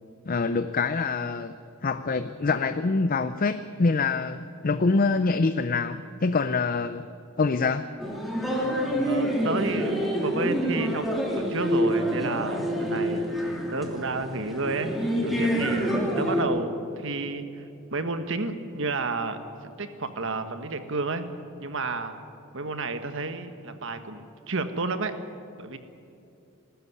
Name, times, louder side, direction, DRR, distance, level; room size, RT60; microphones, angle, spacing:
voice 1, 0.3-1.5 1.8-7.1 7.4-7.9, left 4 dB, 40° left, 11 dB, 0.5 m, -25 dB
sound 1, 8.0-16.4, equal, ahead, 2.9 m, -27 dB
voice 2, 9.0-14.9 15.2-17.6 17.9-19.4 19.8-21.3 21.6-22.2 22.5-25.1 25.6-25.8, right 3 dB, 60° right, 9 dB, 1.4 m, -31 dB
20.0 x 13.5 x 9.7 m, 2.6 s
head